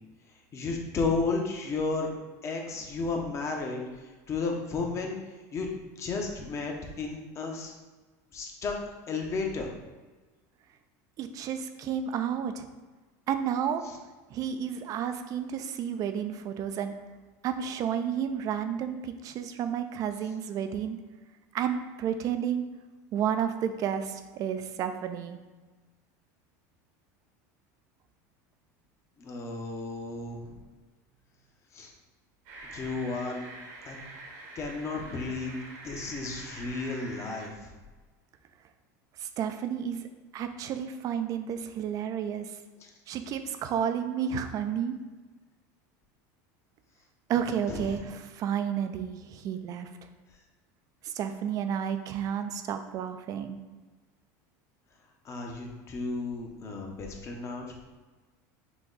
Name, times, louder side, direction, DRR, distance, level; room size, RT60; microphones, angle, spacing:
voice 1, 0.5-2.1 2.4-5.2 5.5-5.7 6.0-7.7 8.3-8.8 9.1-9.7 29.2-30.5 31.7-31.9 32.6-33.4 33.8-34.0 34.5-35.6 35.8-37.5 42.8-42.9 47.7-48.0 55.2-57.7, left 3 dB, 35° left, 1 dB, 0.9 m, -33 dB
voice 2, 11.2-12.7 13.3-13.8 14.3-17.0 17.4-21.0 21.5-22.6 23.1-25.4 39.2-40.1 40.3-42.6 43.1-45.0 47.3-49.9 51.0-53.6, right 8 dB, 40° right, 9 dB, 0.4 m, -31 dB
sound 1, 32.5-37.5, right 2 dB, 65° right, 1.1 m, -45 dB
6.0 x 2.3 x 3.9 m, 1.3 s
supercardioid pair, 120°, 9 cm